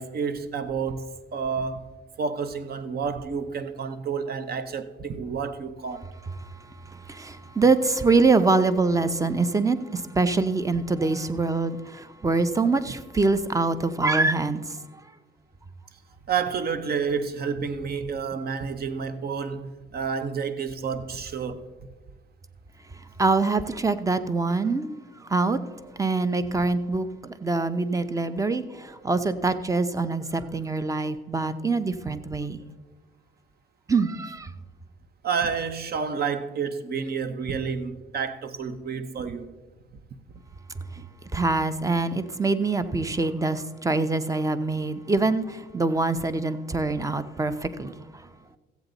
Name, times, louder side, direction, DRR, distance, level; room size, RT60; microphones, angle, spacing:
voice 1, 0.0-1.9 2.2-6.1 16.3-21.7 35.2-39.5 41.0-41.1, right 6 dB, 50° right, 0.9 m, -30 dB
voice 2, 7.1-14.6 23.2-24.9 25.3-25.6 26.0-27.1 27.4-28.6 29.0-32.6 33.9-34.5 41.3-48.0, right 3 dB, 15° right, 0.6 m, -24 dB
14.5 x 8.2 x 4.0 m
cardioid pair, 90°, 20 cm